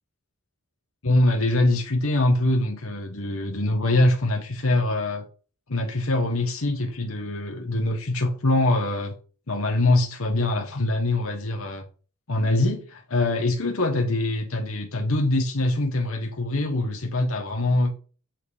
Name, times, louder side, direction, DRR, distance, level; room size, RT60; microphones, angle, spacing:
voice 1, 1.0-5.3 5.7-9.1 9.5-11.8 12.3-17.9, left 2 dB, 65° left, 1.2 m, -23 dB
8.2 x 4.2 x 4.8 m
head